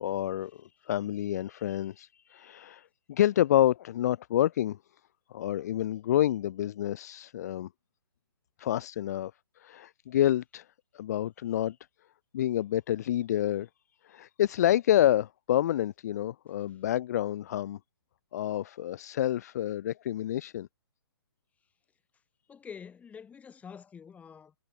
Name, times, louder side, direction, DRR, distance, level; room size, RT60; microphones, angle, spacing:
voice 1, 0.0-4.8 5.3-7.7 8.6-9.3 9.6-10.7 10.9-11.8 12.3-13.7 14.0-17.8 18.3-20.7, left 12 dB, 40° left, 0.4 m, -28 dB
voice 2, 22.5-24.5, left 7 dB, 10° left, 2.4 m, -46 dB
figure-of-eight pair, 130°, 14 cm